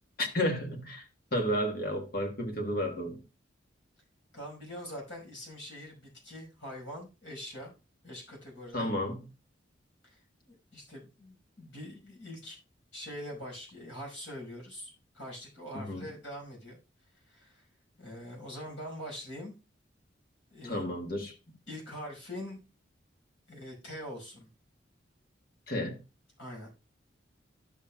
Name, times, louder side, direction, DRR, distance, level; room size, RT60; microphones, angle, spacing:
voice 1, 0.2-1.0 1.3-3.2 8.7-9.2 15.7-16.0 20.6-21.3 25.7-26.0, equal, 50° left, 1.5 m, -32 dB
voice 2, 4.3-7.7 8.0-8.9 10.0-10.2 10.5-12.6 12.9-16.8 17.1-17.7 18.0-19.5 20.5-20.8 21.7-22.6 23.5-24.5 26.4-26.7, equal, 80° left, 5.3 m, -43 dB
11.0 x 7.2 x 2.3 m
head